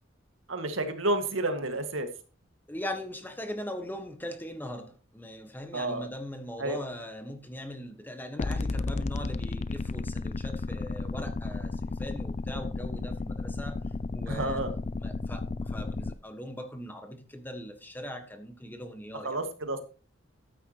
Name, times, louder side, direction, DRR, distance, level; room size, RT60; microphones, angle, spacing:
voice 1, 0.5-2.1 5.7-6.1 6.6-6.8 14.3-14.7 19.2-19.8, right 2 dB, 85° right, 1.9 m, -30 dB
voice 2, 2.7-13.8 14.1-14.6 15.0-19.4, left 1 dB, 10° left, 1.4 m, -40 dB
sound 1, 8.4-16.1, left 3 dB, 35° left, 0.4 m, -33 dB
13.5 x 9.4 x 3.0 m
head